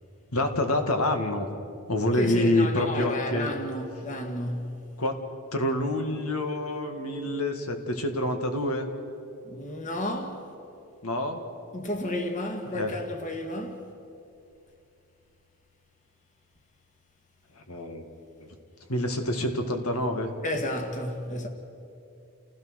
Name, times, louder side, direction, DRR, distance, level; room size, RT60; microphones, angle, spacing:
voice 1, 0.3-1.5 1.9-3.5 5.0-5.1 5.5-8.9 11.0-11.4 12.7-13.0 17.7-18.0 18.4-18.5 18.9-20.3, left 1 dB, 80° left, 2.0 m, -27 dB
voice 2, 2.2-4.9 9.4-10.4 11.7-13.9 20.4-21.5, left 1 dB, 35° left, 1.9 m, -32 dB
29.5 x 16.5 x 6.5 m
head